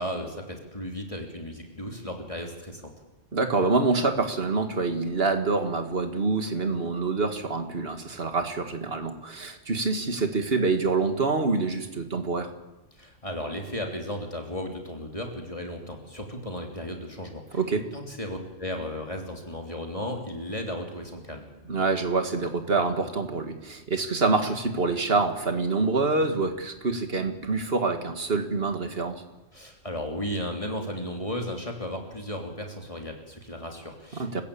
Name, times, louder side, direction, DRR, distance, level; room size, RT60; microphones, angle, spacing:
voice 1, 0.0-2.9 13.0-17.6 17.9-21.5 29.5-34.4, equal, 25° left, 2 dB, 3.2 m, -35 dB
voice 2, 3.3-12.5 17.5-17.9 21.7-29.2 34.1-34.4, right 3 dB, 50° right, 6 dB, 2.2 m, -26 dB
28.0 x 15.5 x 8.7 m, 1.1 s
omnidirectional pair, 1.3 m